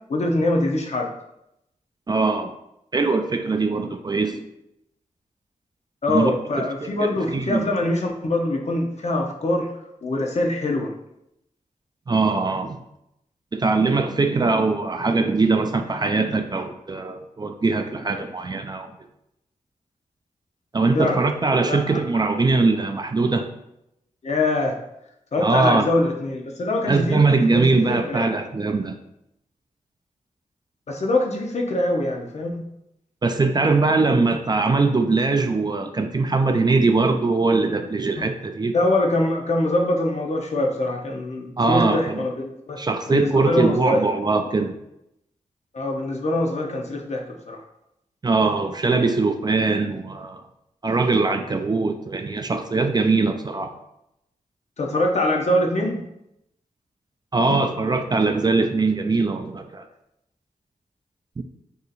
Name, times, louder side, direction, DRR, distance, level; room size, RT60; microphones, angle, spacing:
voice 1, 0.1-1.1 6.0-9.7 10.0-10.9 20.9-21.2 21.7-22.0 24.2-24.8 25.3-27.2 27.5-28.3 30.9-32.6 38.7-42.8 43.1-44.1 45.7-47.6 54.8-56.0, left 1 dB, 50° left, 1 dB, 0.7 m, -23 dB
voice 2, 2.1-2.5 2.9-4.5 6.1-7.7 12.1-12.8 13.5-18.9 20.7-23.5 25.4-25.9 26.9-29.0 33.2-38.7 41.6-42.2 42.8-44.8 48.2-50.4 50.8-53.7 57.3-59.9 61.4-61.5, right 3 dB, 30° right, 6 dB, 0.3 m, -21 dB
2.8 x 2.4 x 3.9 m, 0.81 s
cardioid pair, 55°, 14 cm